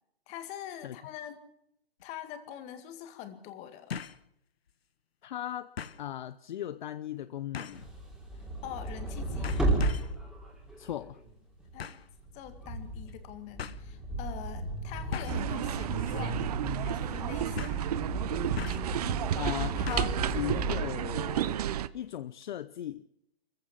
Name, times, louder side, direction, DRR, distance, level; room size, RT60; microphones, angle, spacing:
voice 1, 0.3-1.4 2.0-3.9 8.6-9.6 11.7-12.0 12.3-16.4 16.8-18.0, left 10 dB, 20° left, 2.1 m, -44 dB
sound 1, 2.0-2.1 3.9-4.2 4.7-4.8 5.8-6.0 7.5-7.9 8.8-9.1 9.4-10.2 11.8-12.1 13.1-13.2 13.6-13.8 15.1-15.5 16.0-16.2 16.5-16.6 17.6-17.9 18.6-19.0 19.9-20.2 20.5-20.6, left 7 dB, 80° left, 1.2 m, -40 dB
voice 2, 5.2-5.7 6.0-7.9 10.8-11.2 19.3-21.6 21.9-23.0, left 11 dB, 50° left, 0.7 m, -37 dB
sound 2, 7.7-11.3 11.6-20.8, right 2 dB, ahead, 3.3 m, -34 dB
sound 3, 15.3-21.9, right 12 dB, 40° right, 0.7 m, -32 dB
24.5 x 15.5 x 7.5 m
hypercardioid pair, 150°, 30 cm